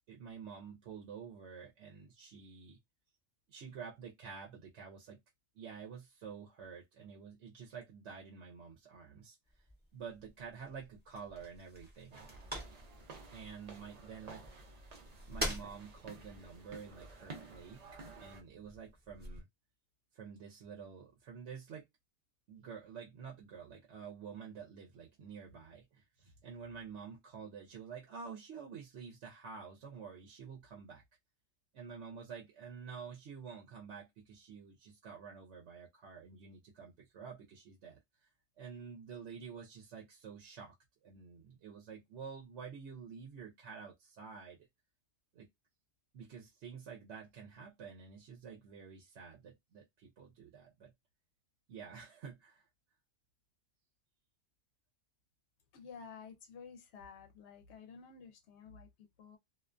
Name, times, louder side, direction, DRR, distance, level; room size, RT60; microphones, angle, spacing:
voice 1, 0.1-2.8 3.5-5.2 5.6-9.4 9.9-12.3 13.3-14.4 15.3-19.5 20.1-21.9 22.5-31.0 31.7-38.3 38.6-40.8 41.0-44.7 45.3-45.5 46.1-50.9 51.7-52.6, right 6 dB, 85° right, 0.9 m, -49 dB
sound 1, 9.5-19.4, equal, 10° right, 0.7 m, -47 dB
sound 2, 12.1-18.4, right 3 dB, 50° right, 0.5 m, -52 dB
voice 2, 55.7-59.4, left 6 dB, 80° left, 0.9 m, -52 dB
2.4 x 2.2 x 2.4 m
omnidirectional pair, 1.1 m